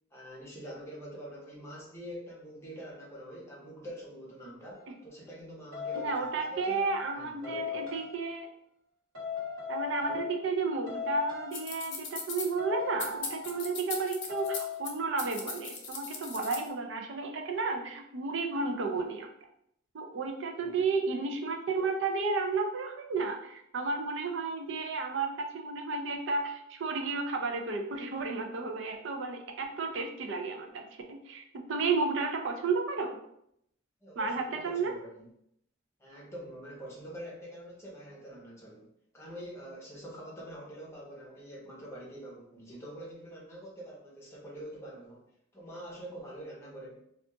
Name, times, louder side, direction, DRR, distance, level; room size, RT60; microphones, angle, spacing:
voice 1, 0.1-6.9 7.1-8.0 10.1-10.2 20.6-20.8 34.0-35.3 36.0-38.9 39.1-45.3 45.5-47.0, right 1 dB, 15° left, -4 dB, 0.7 m, -45 dB
sound 1, 4.7-4.9 5.7-7.0 7.4-8.2 9.1-10.6 10.9-11.8 12.6-13.8 14.3-14.9, left 6 dB, 90° right, 1.3 m, -38 dB
voice 2, 5.9-8.5 9.7-19.3 19.9-31.4 31.7-33.1 34.2-34.9, right 4 dB, 65° right, 3 dB, 0.4 m, -32 dB
sound 2, 11.5-12.5 13.0-14.9 15.2-16.7, left 5 dB, 60° left, 0.6 m, -38 dB
2.4 x 2.3 x 3.7 m, 0.75 s
head